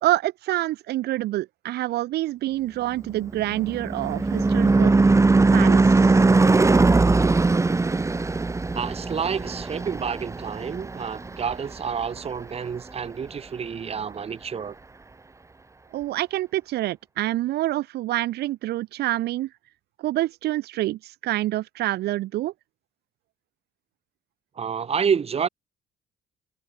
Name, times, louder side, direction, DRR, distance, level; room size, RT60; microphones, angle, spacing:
voice 1, 0.0-4.9 5.5-6.2 15.9-19.5 20.0-22.5, right 16 dB, 75° right, 1.5 m, -27 dB
Car passing by / Truck / Engine, 3.1-11.8, right 3 dB, 15° right, 2.6 m, -20 dB
voice 2, 8.7-14.7 24.5-25.5, right 6 dB, 35° right, 3.2 m, -29 dB
cardioid pair, 110°, 17 cm